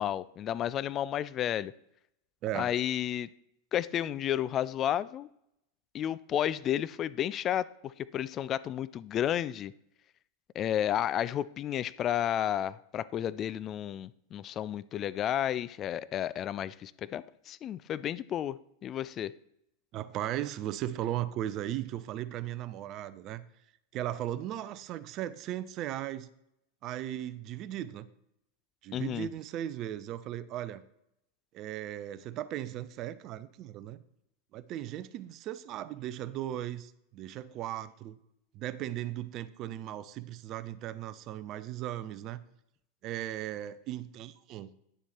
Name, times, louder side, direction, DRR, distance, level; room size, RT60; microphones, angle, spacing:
voice 1, 0.0-1.7 2.5-3.3 3.7-5.3 5.9-9.7 10.5-19.3 28.9-29.3, left 10 dB, 35° left, 18 dB, 0.4 m, -32 dB
voice 2, 19.9-23.4 23.9-26.3 26.8-28.1 28.8-30.8 31.5-34.0 34.5-38.2 38.5-42.4 43.0-44.7, right 12 dB, 40° right, 15 dB, 0.6 m, -37 dB
10.0 x 7.0 x 4.4 m, 0.78 s
figure-of-eight pair, 90°, 0 cm